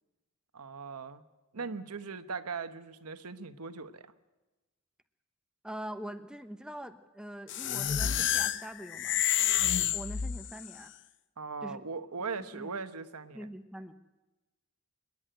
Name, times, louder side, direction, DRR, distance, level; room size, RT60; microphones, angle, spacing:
voice 1, 0.5-1.2 1.5-4.1 11.4-13.5, right 4 dB, 90° right, 9 dB, 1.2 m, -39 dB
voice 2, 5.6-9.2 9.9-10.9 11.6-11.8 12.5-12.7 13.3-13.9, right 1 dB, 5° right, 8 dB, 1.1 m, -43 dB
sound 1, 7.5-10.7, left 10 dB, 55° left, 0.7 m, -29 dB
26.5 x 11.0 x 9.1 m, 1.1 s
head